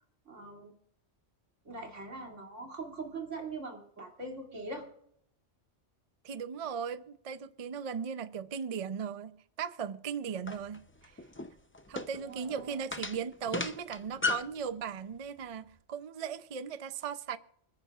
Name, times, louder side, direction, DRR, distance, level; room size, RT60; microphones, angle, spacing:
voice 1, 0.3-0.7 1.7-4.9 12.2-12.8, right 3 dB, 75° right, 3.0 m, -42 dB
voice 2, 6.2-11.1 11.9-17.4, right 7 dB, 45° right, 0.5 m, -37 dB
sound 1, 10.5-14.6, left 3 dB, 15° left, 0.4 m, -36 dB
26.0 x 9.7 x 2.4 m
omnidirectional pair, 1.3 m